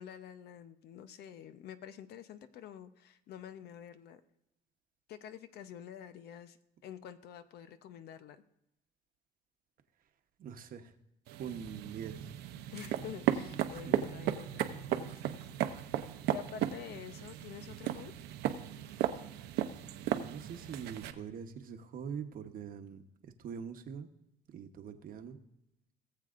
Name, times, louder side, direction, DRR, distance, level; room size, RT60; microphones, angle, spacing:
voice 1, 0.0-4.2 5.1-6.6 6.8-8.4 12.7-15.4 16.3-18.1, left 9 dB, 70° left, 11 dB, 0.7 m, -48 dB
voice 2, 10.4-10.9 11.4-12.3 13.7-13.8 20.1-24.1 24.5-25.4, right 7 dB, 55° right, 7 dB, 1.0 m, -43 dB
sound 1, 11.3-21.1, right 11 dB, 80° right, 0.7 m, -36 dB
18.5 x 7.6 x 2.5 m, 0.85 s
cardioid pair, 110°, 17 cm